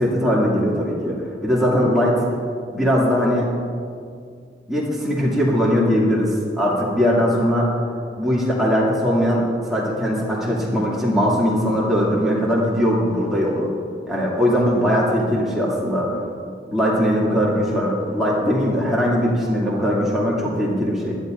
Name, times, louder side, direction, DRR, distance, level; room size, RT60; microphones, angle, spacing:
voice 1, 0.0-2.2 2.7-3.5 4.7-7.7 8.2-13.7 14.1-16.1 16.7-21.2, equal, ahead, -7 dB, 2.4 m, -20 dB
19.5 x 14.0 x 2.6 m, 2.3 s
head